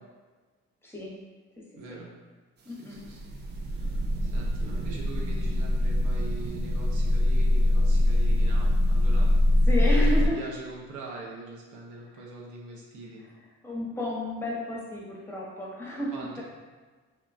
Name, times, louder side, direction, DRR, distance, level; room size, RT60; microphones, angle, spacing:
voice 1, 0.8-1.1 1.9-2.0 2.6-3.0 9.7-10.4 13.2-13.3 13.6-16.4, left 1 dB, 10° left, -4 dB, 0.7 m, -32 dB
voice 2, 1.8-2.1 2.7-3.3 3.7-9.3 9.9-13.2 16.1-16.4, right 2 dB, 85° right, -2 dB, 0.7 m, -43 dB
sound 1, 2.9-10.3, left 1 dB, 35° right, 0.4 m, -23 dB
3.0 x 2.1 x 2.5 m, 1.4 s
cardioid pair, 90°, 30 cm